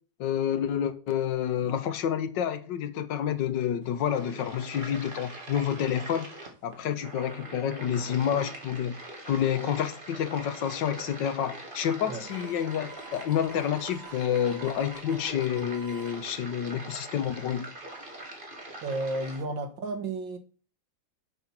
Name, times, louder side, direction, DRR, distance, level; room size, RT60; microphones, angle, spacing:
voice 1, 0.2-6.3 6.6-9.0 9.2-17.7, left 9 dB, 75° left, 1.5 m, -29 dB
sound 1, 3.8-19.4, right 2 dB, 30° right, 2.0 m, -43 dB
Harmonica, 12.2-16.2, right 5 dB, 65° right, 3.4 m, -50 dB
voice 2, 18.8-20.4, right 2 dB, 80° right, 2.1 m, -32 dB
7.9 x 5.5 x 5.9 m
omnidirectional pair, 2.0 m